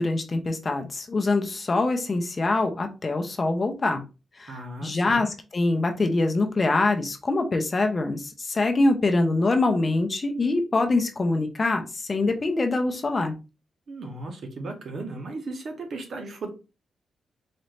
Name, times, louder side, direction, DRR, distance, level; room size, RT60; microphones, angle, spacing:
voice 1, 0.0-4.0 4.4-11.8 12.1-13.4, left 2 dB, 30° left, 5 dB, 0.6 m, -24 dB
voice 2, 4.5-5.3 13.9-16.5, right 2 dB, 50° right, 4 dB, 1.0 m, -36 dB
4.1 x 2.6 x 3.2 m, 0.29 s
wide cardioid pair, 145°, 0 cm